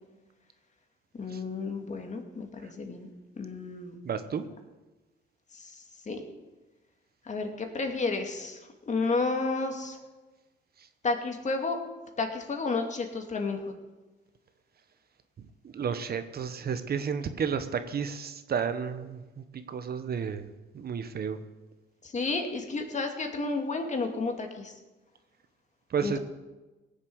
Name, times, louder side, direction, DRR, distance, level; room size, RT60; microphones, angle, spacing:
voice 1, 1.1-3.1 3.4-4.0 5.5-5.7 6.1-6.2 7.3-8.6 8.9-10.0 11.0-11.8 12.2-13.7 22.0-24.7 26.0-26.1, left 3 dB, 35° left, 4 dB, 2.5 m, -31 dB
voice 2, 4.0-4.4 10.8-10.9 15.4-21.4 25.9-26.2, right 6 dB, 50° right, 10 dB, 1.2 m, -32 dB
18.0 x 7.2 x 8.0 m, 1.2 s
cardioid pair, 90°, 20 cm